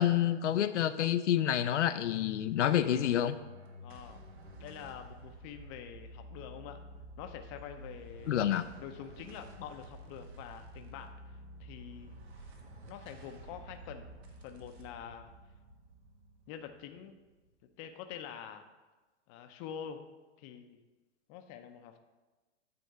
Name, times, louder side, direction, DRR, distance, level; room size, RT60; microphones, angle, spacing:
voice 1, 0.0-3.4 8.3-8.7, left 11 dB, 80° left, 11 dB, 0.5 m, -28 dB
sound 1, 3.0-17.6, right 1 dB, 60° right, 1.4 m, -51 dB
voice 2, 3.8-4.2 4.6-6.8 7.2-8.4 8.8-11.1 11.6-12.2 12.9-14.1 14.4-15.3 16.5-17.2 17.8-18.6 19.3-20.0 20.4-20.8 21.3-22.0, left 8 dB, 30° left, 6 dB, 0.6 m, -46 dB
9.3 x 3.5 x 6.6 m, 1.2 s
hypercardioid pair, 135°, 35 cm